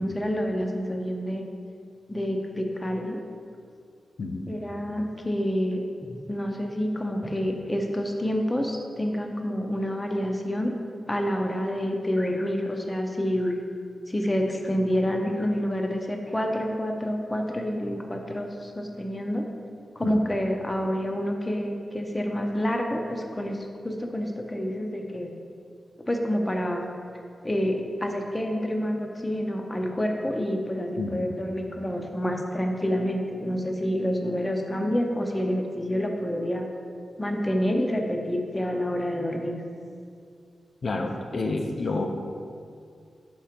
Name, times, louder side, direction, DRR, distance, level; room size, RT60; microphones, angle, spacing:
voice 1, 0.0-1.4 2.1-3.2 4.5-10.7 11.1-13.6 14.1-19.4 20.0-25.3 26.1-26.8 27.4-36.7 37.2-39.6, equal, 20° left, 2 dB, 0.7 m, -28 dB
voice 2, 4.2-4.5 20.0-20.2 31.0-31.3 40.8-42.1, left 3 dB, 65° left, 1 dB, 0.6 m, -29 dB
6.0 x 4.4 x 5.0 m, 2.3 s
wide cardioid pair, 80°, 0 cm